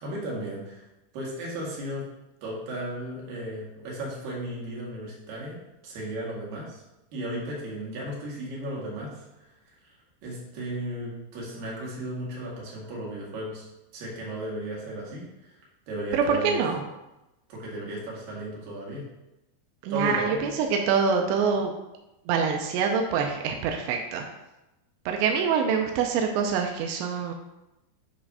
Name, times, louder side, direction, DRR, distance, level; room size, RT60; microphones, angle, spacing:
voice 1, 0.0-0.9 1.1-2.0 2.4-5.6 5.8-6.8 7.1-9.9 10.2-13.7 13.9-15.6 15.9-16.6 17.5-19.1 19.9-20.5, right 1 dB, 60° right, -5 dB, 3.4 m, -35 dB
voice 2, 16.1-16.8 19.8-21.7 22.3-24.3 25.1-27.3, right 6 dB, 90° right, 3 dB, 2.8 m, -25 dB
8.6 x 3.2 x 5.4 m, 0.95 s
omnidirectional pair, 4.8 m